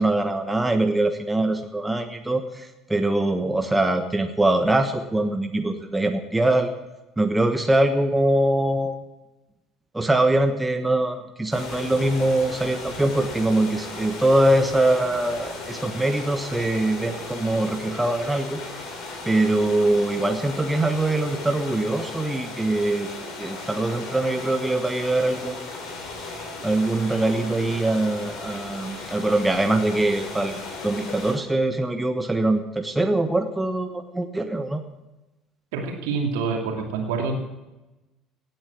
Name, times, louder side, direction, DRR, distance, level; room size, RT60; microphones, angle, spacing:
voice 1, 0.0-6.7 7.2-9.0 9.9-18.6 19.2-23.1 23.4-25.6 26.6-34.8, right 2 dB, 10° right, 6 dB, 1.2 m, -23 dB
sound 1, 11.5-31.3, left 3 dB, 50° left, 3.7 m, -36 dB
voice 2, 35.7-37.4, right 4 dB, 65° right, 2 dB, 2.6 m, -26 dB
17.5 x 9.0 x 6.0 m, 1.0 s
figure-of-eight pair, 60°, 0 cm